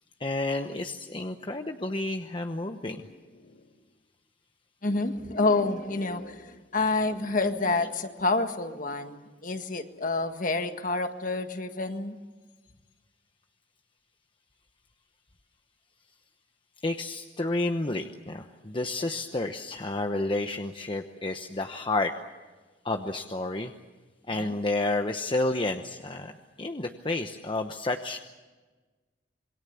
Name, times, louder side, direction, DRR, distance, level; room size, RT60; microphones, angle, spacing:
voice 1, 0.2-3.0 16.8-22.1 22.8-23.7 24.3-26.3 26.6-28.2, left 2 dB, 30° left, 5 dB, 1.0 m, -30 dB
voice 2, 4.8-12.2 24.3-24.5, left 3 dB, 45° left, 7 dB, 1.7 m, -28 dB
27.0 x 22.5 x 7.0 m, 1.3 s
head